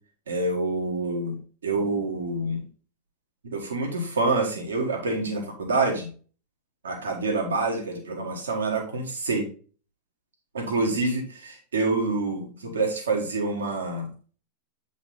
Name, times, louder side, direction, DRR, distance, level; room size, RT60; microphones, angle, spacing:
voice 1, 0.3-1.4 1.6-2.6 3.5-6.1 6.8-9.5 10.5-14.1, right 3 dB, 75° right, 1 dB, 1.7 m, -27 dB
8.0 x 4.2 x 4.0 m, 0.39 s
figure-of-eight pair, 90°, 0 cm